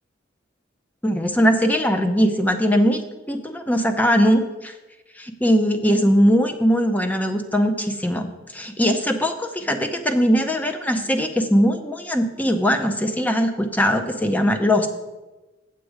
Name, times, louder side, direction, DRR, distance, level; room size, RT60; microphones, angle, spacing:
voice 1, 1.0-4.7 5.2-14.9, equal, 10° left, 6 dB, 0.6 m, -20 dB
8.2 x 7.6 x 4.9 m, 1.1 s
head